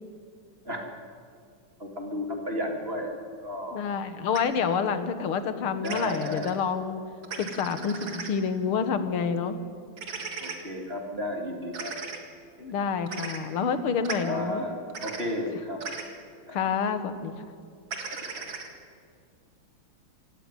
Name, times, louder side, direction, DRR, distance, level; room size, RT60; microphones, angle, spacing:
voice 1, 1.8-3.1 3.4-3.8 5.8-6.5 10.4-12.2 14.2-14.7 15.0-15.8 16.5-16.6, left 1 dB, 25° right, 3 dB, 2.7 m, -33 dB
voice 2, 3.7-7.0 7.4-9.6 12.6-14.7 16.5-17.5, left 6 dB, 85° left, 11 dB, 2.2 m, -28 dB
sound 1, 4.3-4.4 5.8-6.5 7.2-8.3 10.0-10.6 11.7-12.2 13.1-13.4 14.0-14.2 14.9-15.2 15.8-16.1 17.9-18.7, right 5 dB, 65° right, 2.8 m, -36 dB
26.5 x 15.0 x 9.9 m, 2.3 s
omnidirectional pair, 2.3 m